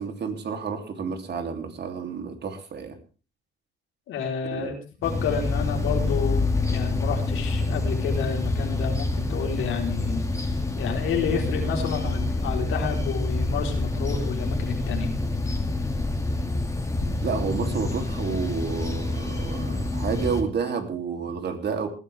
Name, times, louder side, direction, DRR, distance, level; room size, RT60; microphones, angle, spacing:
voice 1, 0.0-2.9 4.5-4.7 17.2-21.9, right 5 dB, 60° right, 6 dB, 3.1 m, -30 dB
voice 2, 4.1-4.8 5.0-6.4 6.7-10.3 10.8-15.1, left 6 dB, 90° left, 2 dB, 4.0 m, -30 dB
sound 1, 5.0-20.4, left 2 dB, 15° left, 2.5 m, -27 dB
19.5 x 11.5 x 3.5 m, 0.35 s
cardioid pair, 90°, 20 cm